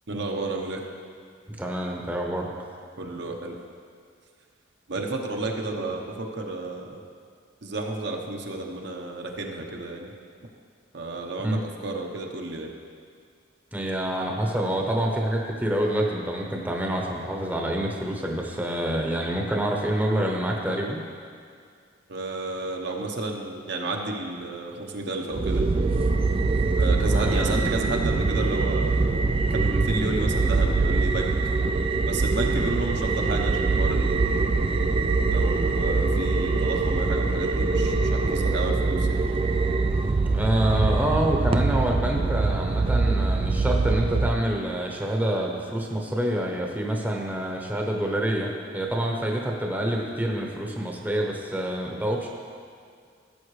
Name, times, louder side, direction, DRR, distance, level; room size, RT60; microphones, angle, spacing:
voice 1, 0.1-0.8 3.0-3.6 4.9-7.0 7.6-10.1 10.9-12.7 22.1-25.6 26.8-29.2 29.5-31.4 32.0-34.5 35.3-39.2, right 2 dB, 65° right, 1 dB, 1.0 m, -31 dB
voice 2, 1.6-2.5 11.4-11.6 13.7-21.0 27.1-27.6 40.3-52.3, right 1 dB, 10° right, 0 dB, 0.8 m, -27 dB
sound 1, 25.3-44.3, right 3 dB, 30° right, 0.3 m, -23 dB
15.5 x 7.0 x 3.2 m, 2.2 s
head